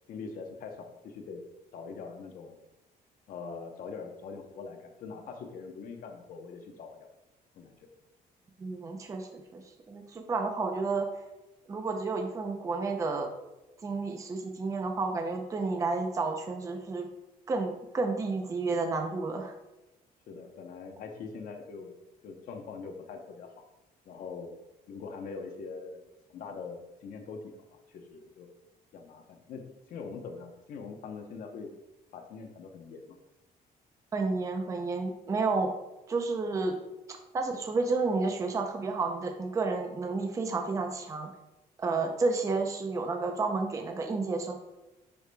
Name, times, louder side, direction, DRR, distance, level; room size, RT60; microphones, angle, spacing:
voice 1, 0.1-1.4 1.7-2.6 3.3-7.1 7.5-7.9 20.3-22.0 22.2-23.5 24.1-24.5 24.9-26.0 26.3-28.5 28.9-31.7 32.1-33.2, left 5 dB, 60° left, 3 dB, 0.9 m, -43 dB
voice 2, 8.6-11.1 11.7-13.3 13.8-17.1 17.5-19.5 34.1-35.7 36.1-36.8 37.3-41.3 41.8-44.6, right 3 dB, 20° right, 4 dB, 0.5 m, -31 dB
10.5 x 4.8 x 2.2 m, 0.99 s
cardioid pair, 175°, 16 cm